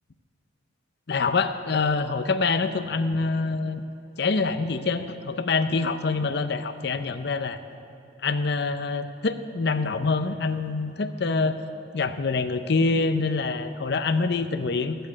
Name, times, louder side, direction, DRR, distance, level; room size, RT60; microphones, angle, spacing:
voice 1, 1.1-3.8 4.2-7.6 8.2-11.6 11.9-15.0, left 4 dB, 60° left, 10 dB, 0.7 m, -25 dB
15.5 x 7.9 x 8.4 m, 2.7 s
head